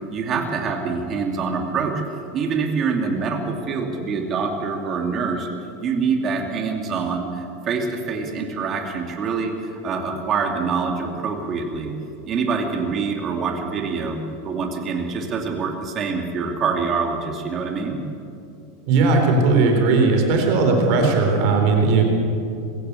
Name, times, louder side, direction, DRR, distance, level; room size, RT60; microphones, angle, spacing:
voice 1, 0.1-2.0 2.3-5.5 5.8-11.9 12.3-14.2 14.4-18.0, right 5 dB, 25° right, 2 dB, 2.6 m, -25 dB
voice 2, 18.9-22.0, right 3 dB, 50° right, 2 dB, 4.0 m, -17 dB
21.5 x 15.5 x 8.4 m, 2.6 s
supercardioid pair, 160°, 0 cm